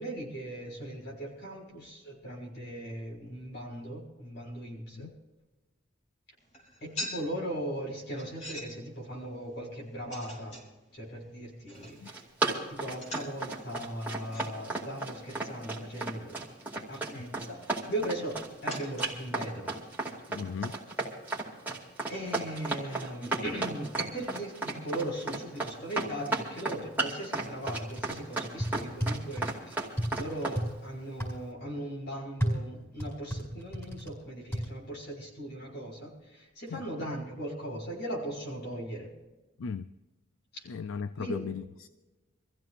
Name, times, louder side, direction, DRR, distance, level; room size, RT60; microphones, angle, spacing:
voice 1, 0.0-5.1 6.8-10.6 10.9-12.2 12.7-16.5 16.9-19.7 22.1-39.1 40.5-40.7 41.1-41.5, right 1 dB, 55° left, 6.2 m, -38 dB
sound 1, 6.4-23.1, left 1 dB, 35° left, 5.5 m, -48 dB
Run, 11.8-30.6, right 3 dB, 10° right, 2.5 m, -33 dB
voice 2, 20.3-20.8 36.7-36.8 39.6-39.9 40.7-41.9, left 6 dB, 80° left, 0.5 m, -37 dB
sound 2, 27.7-28.2 28.6-29.5 30.0-30.7 31.2-31.4 32.4-34.1 34.5-34.7, equal, 15° left, 4.9 m, -32 dB
26.0 x 15.0 x 2.6 m
head